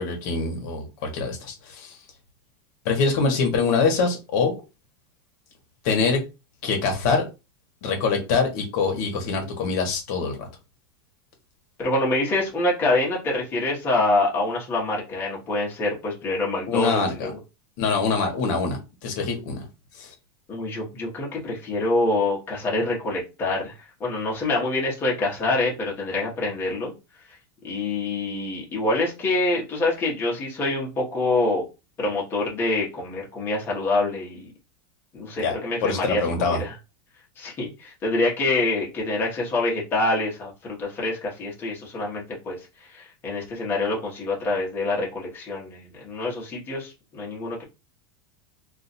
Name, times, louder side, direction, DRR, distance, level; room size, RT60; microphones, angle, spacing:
voice 1, 0.0-2.0 2.8-4.5 5.8-6.2 6.6-7.3 7.8-10.5 16.7-17.3 17.8-19.6 20.0-20.1 35.4-35.6 35.8-36.6, left 4 dB, 45° left, 1.0 m, -24 dB
voice 2, 11.8-17.4 20.5-26.9 27.3-27.4 27.6-31.6 32.0-34.5 35.1-36.7 37.4-42.6 42.8-47.6, left 2 dB, 15° left, 0.9 m, -26 dB
2.5 x 2.3 x 4.0 m
supercardioid pair, 180°, 13 cm